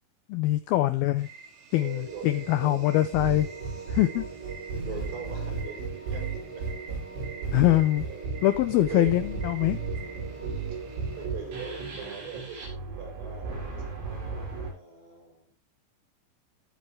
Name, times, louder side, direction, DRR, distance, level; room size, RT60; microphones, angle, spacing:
voice 1, 0.3-1.3 1.7-3.5 3.9-4.3 7.5-8.1 8.4-9.8, left 15 dB, 80° left, 11 dB, 2.2 m, -23 dB
sound 1, 1.2-11.3, right 5 dB, 55° right, 4.1 m, -48 dB
voice 2, 1.8-2.8 4.8-6.2 6.6-6.7 8.0-8.4 8.9-9.1 10.7-10.8 11.1-13.6 14.5-15.5, right 6 dB, 70° right, 2 dB, 6.5 m, -41 dB
sound 2, 1.9-11.9, right 4 dB, 5° right, 4.0 m, -43 dB
sound 3, 3.1-14.7, right 4 dB, 90° right, 8.7 m, -35 dB
19.5 x 8.2 x 3.4 m, 0.32 s
omnidirectional pair, 5.2 m